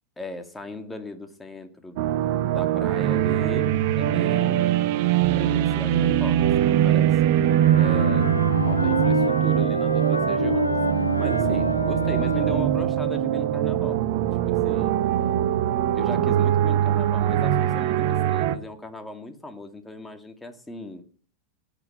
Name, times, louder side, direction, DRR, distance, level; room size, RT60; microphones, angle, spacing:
voice 1, 0.2-2.0 2.5-4.8 5.3-7.2 7.7-8.3 8.6-14.0 14.5-15.0 15.9-21.1, left 2 dB, 10° left, 7 dB, 2.1 m, -37 dB
sound 1, 2.0-18.6, right 11 dB, 50° right, 1.0 m, -22 dB
Wind instrument woodwind instrument, 7.4-12.8, left 3 dB, 80° left, 1.4 m, -28 dB
18.0 x 8.3 x 6.5 m, 0.43 s
figure-of-eight pair, 90°, 0 cm